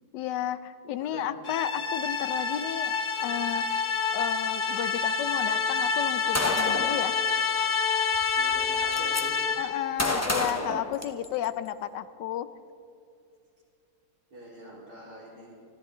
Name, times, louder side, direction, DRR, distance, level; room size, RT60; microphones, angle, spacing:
voice 1, 0.1-3.8 4.1-7.2 9.6-12.5, left 11 dB, 75° left, 14 dB, 1.2 m, -32 dB
voice 2, 0.9-1.3 8.4-9.4 14.3-15.5, right 1 dB, 55° right, -7 dB, 4.9 m, -44 dB
sound 1, 1.4-9.9, left 5 dB, 50° left, 1.2 m, -28 dB
Gunshot gunfire, 6.3-7.0 8.1-8.2 8.5-9.2 10.0-11.5, left 1 dB, 25° left, 0.3 m, -29 dB
25.5 x 13.5 x 3.8 m, 2.5 s
omnidirectional pair, 2.0 m